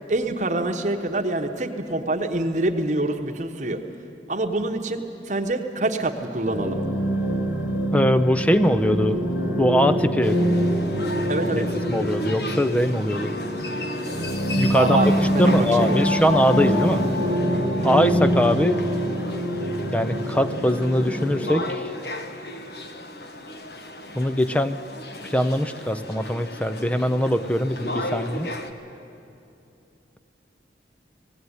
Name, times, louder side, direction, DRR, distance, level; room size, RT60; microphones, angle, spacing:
voice 1, 0.1-3.8 4.3-6.8 11.3-11.7 14.7-16.1 17.8-18.1, right 2 dB, 40° right, 5 dB, 1.0 m, -26 dB
sound 1, 6.5-21.7, equal, 80° left, 2.6 m, -25 dB
voice 2, 7.9-9.2 9.6-10.4 11.6-13.3 14.6-15.0 15.4-17.1 17.8-18.8 19.9-21.9 24.2-24.8 25.2-28.5, equal, 5° left, 11 dB, 0.5 m, -22 dB
sound 2, 10.2-28.7, left 1 dB, 60° left, 1.2 m, -34 dB
19.0 x 16.0 x 9.8 m, 2.8 s
head